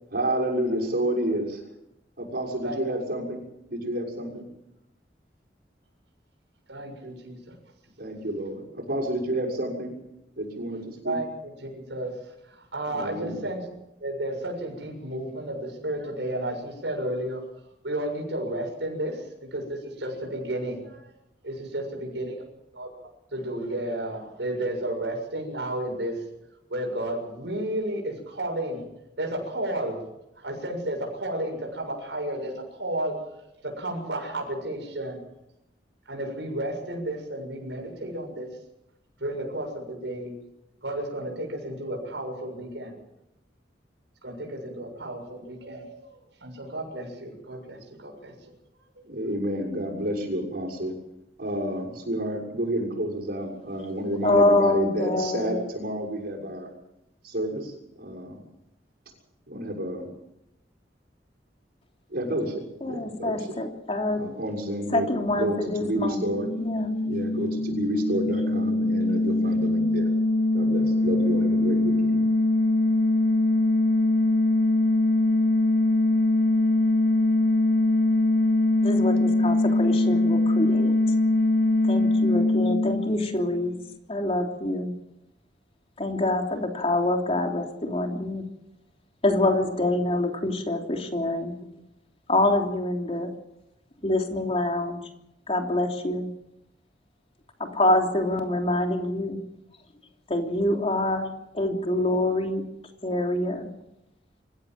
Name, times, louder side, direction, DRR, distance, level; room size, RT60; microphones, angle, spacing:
voice 1, 0.1-1.5 2.2-3.4 3.7-4.5 8.0-9.9 10.4-11.2 12.9-13.4 49.0-50.9 51.4-56.7 57.2-58.4 59.5-60.1 62.1-63.6 64.1-66.5 67.0-70.1 70.5-72.2, right 1 dB, 60° right, -1 dB, 6.6 m, -30 dB
voice 2, 6.7-7.5 11.0-12.2 12.5-13.6 14.0-17.4 17.8-21.0 21.4-22.4 22.7-22.9 23.3-26.2 26.7-28.8 29.2-30.0 30.4-35.2 36.1-38.5 39.2-40.4 40.8-43.0 44.2-48.5 48.9-49.1, right 1 dB, 80° right, 1 dB, 7.2 m, -32 dB
voice 3, 54.2-55.6 62.8-64.2 64.9-66.2 66.6-66.9 78.8-80.9 81.9-83.7 84.1-84.9 86.0-88.4 89.2-91.5 92.3-93.3 94.0-95.0 95.5-96.3 97.6-99.4 100.3-102.7 103.0-103.7, left 2 dB, 35° left, 3 dB, 3.2 m, -25 dB
sound 1, 66.2-83.7, left 2 dB, 80° left, 3.7 m, -22 dB
26.0 x 15.5 x 7.7 m, 0.87 s
head